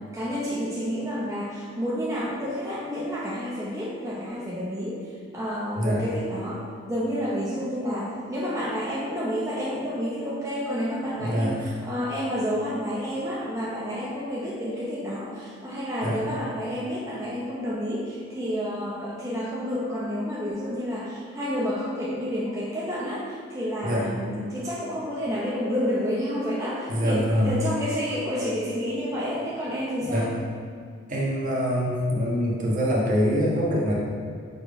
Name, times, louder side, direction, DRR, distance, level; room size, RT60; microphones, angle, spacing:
voice 1, 0.0-6.6 6.9-30.3, equal, 15° right, -8 dB, 0.7 m, -30 dB
voice 2, 11.2-11.6 16.0-16.2 23.8-24.1 26.9-27.5 30.0-30.3 31.1-33.9, equal, 40° right, -5 dB, 1.3 m, -24 dB
5.3 x 4.6 x 4.6 m, 2.2 s
head